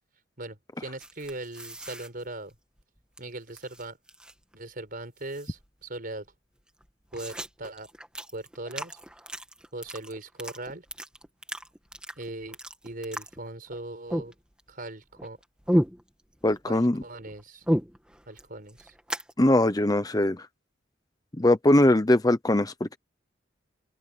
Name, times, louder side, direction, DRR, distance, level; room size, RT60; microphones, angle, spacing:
voice 1, 0.4-2.5 3.2-4.0 4.5-6.3 7.1-7.9 8.3-9.0 9.7-10.8 12.2-12.6 12.8-14.3 14.7-15.4 16.7-17.6 18.3-18.9, right 2 dB, 50° right, 4.9 m, -39 dB
sound 1, 1.0-3.2 3.5-4.5 4.8-4.9 5.2-5.8 6.3-6.4 6.6-13.8 14.1-14.8 15.1-16.6 16.9-19.3, equal, 5° right, 2.1 m, -33 dB
voice 2, 16.4-17.0 19.4-20.5 21.4-23.0, left 1 dB, 20° left, 0.8 m, -21 dB
open air
head